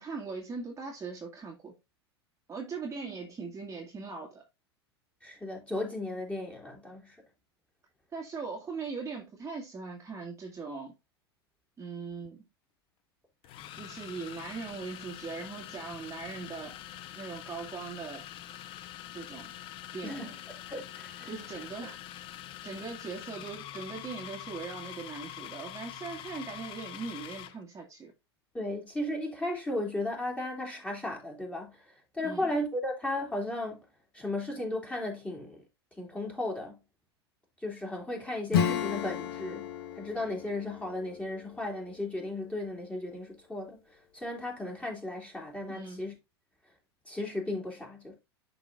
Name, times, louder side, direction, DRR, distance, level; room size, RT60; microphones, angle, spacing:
voice 1, 0.0-1.7 2.5-4.4 8.1-10.9 11.8-12.5 13.7-16.8 17.1-18.2 19.1-19.5 19.9-20.4 21.2-22.0 22.6-28.1 32.2-32.5 45.7-46.1, right 4 dB, 20° right, 1.9 m, -40 dB
voice 2, 5.2-7.2 20.0-20.3 20.7-21.3 28.5-31.8 32.1-33.8 34.1-35.6 36.0-36.7 37.6-39.7 40.0-46.1 47.1-48.1, left 1 dB, 10° left, 2.8 m, -35 dB
sound 1, 12.1-12.3 13.4-27.6, left 12 dB, 40° left, 0.6 m, -45 dB
Acoustic guitar / Strum, 38.5-42.8, left 8 dB, 65° left, 1.2 m, -34 dB
11.0 x 3.9 x 2.5 m
hypercardioid pair, 90°, 14 cm